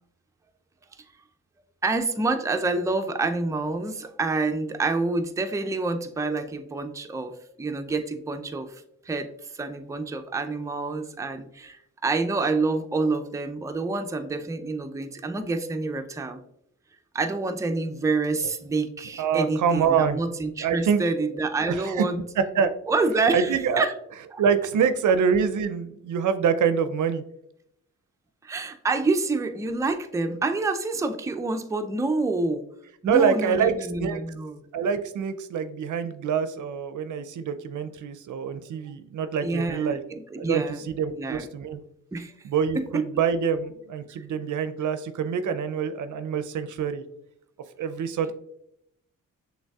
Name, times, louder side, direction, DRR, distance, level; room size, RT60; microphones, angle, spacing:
voice 1, 1.8-9.3 9.5-16.4 17.1-22.2 22.9-23.9 28.4-32.6 33.0-34.6 39.4-40.8 41.1-41.5 42.1-42.3 42.8-43.0, right 3 dB, 10° right, 6 dB, 0.5 m, -27 dB
voice 2, 19.2-20.2 20.6-21.0 21.7-22.0 22.4-22.7 23.3-23.9 24.4-27.2 33.0-34.2 34.7-40.0 40.4-41.8 42.4-47.0 47.8-48.3, right 6 dB, 60° right, 11 dB, 0.5 m, -25 dB
6.2 x 3.3 x 2.3 m, 0.76 s
supercardioid pair, 45°, 35 cm